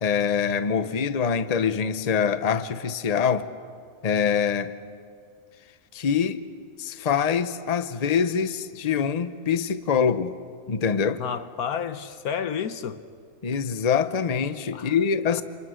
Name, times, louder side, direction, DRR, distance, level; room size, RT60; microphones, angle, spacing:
voice 1, 0.0-3.5 4.0-4.7 5.9-6.4 6.8-10.3 10.7-11.2 13.4-15.4, left 7 dB, 35° left, 0.8 m, -24 dB
voice 2, 11.2-13.0 14.7-15.0 15.3-15.4, left 7 dB, 85° left, 1.5 m, -31 dB
28.0 x 27.0 x 6.4 m
omnidirectional pair, 1.5 m